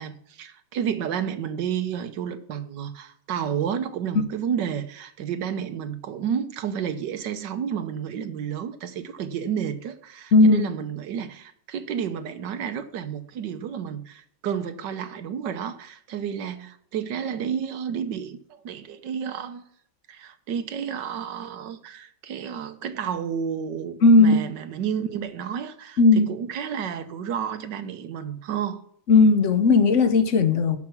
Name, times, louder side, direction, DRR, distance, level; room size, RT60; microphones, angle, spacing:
voice 1, 0.0-19.6 20.1-28.8, right 8 dB, 65° right, 1.5 m, -31 dB
voice 2, 10.3-10.6 24.0-24.4 26.0-26.3 29.1-30.8, left 3 dB, 50° left, 1.0 m, -16 dB
12.0 x 6.0 x 5.9 m
omnidirectional pair, 2.1 m